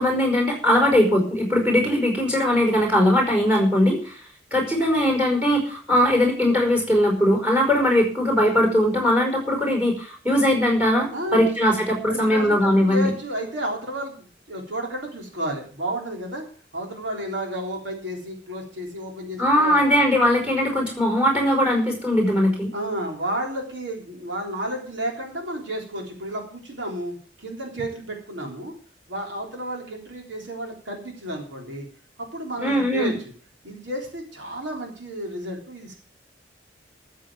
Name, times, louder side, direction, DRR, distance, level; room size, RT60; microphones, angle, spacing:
voice 1, 0.0-4.1 4.5-13.1 19.4-22.7 32.6-33.1, left 1 dB, 5° right, 2 dB, 5.2 m, -20 dB
voice 2, 11.1-11.5 12.1-16.4 16.7-19.8 22.7-28.7 29.1-31.9 32.2-33.1 33.6-35.9, right 1 dB, 85° right, 1 dB, 3.7 m, -32 dB
14.0 x 7.5 x 7.4 m, 0.42 s
head